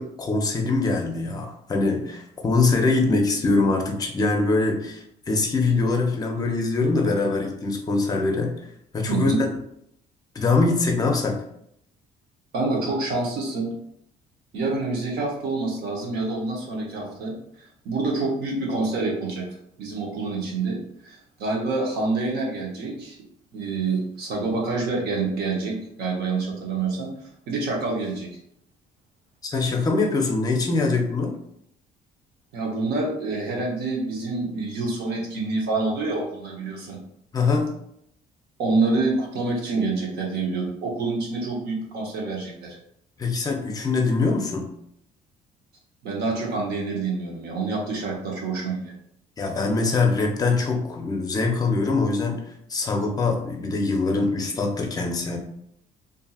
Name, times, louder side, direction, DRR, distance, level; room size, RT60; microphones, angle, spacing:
voice 1, 0.0-8.5 8.9-9.5 10.3-11.4 29.4-31.3 37.3-37.7 43.2-44.7 49.4-52.4 52.7-55.4, left 3 dB, 20° left, 3 dB, 0.5 m, -23 dB
voice 2, 9.1-9.4 12.5-13.7 14.5-19.5 19.8-23.2 23.5-27.1 27.5-28.3 32.5-37.0 38.6-42.8 46.0-48.9, right 3 dB, 75° right, -1 dB, 0.9 m, -27 dB
2.7 x 2.5 x 2.4 m, 0.74 s
cardioid pair, 110°, 17 cm